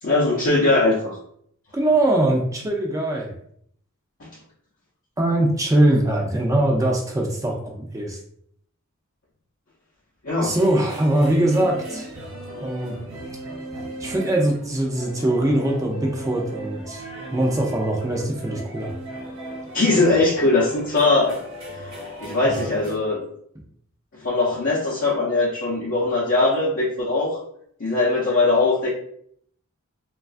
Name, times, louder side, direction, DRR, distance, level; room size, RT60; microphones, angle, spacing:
voice 1, 0.0-1.2 4.2-4.3 10.2-10.5 19.7-21.3 21.7-23.2 24.2-27.4 27.8-28.9, left 2 dB, 60° left, -7 dB, 0.6 m, -20 dB
voice 2, 1.7-3.3 5.2-8.2 10.4-12.1 12.6-13.0 14.0-17.0 17.3-18.9 22.4-22.6, right 1 dB, 15° right, 0 dB, 0.4 m, -22 dB
sound 1, 10.5-23.0, right 1 dB, 65° right, 1.0 m, -37 dB
3.1 x 2.3 x 2.4 m, 0.66 s
head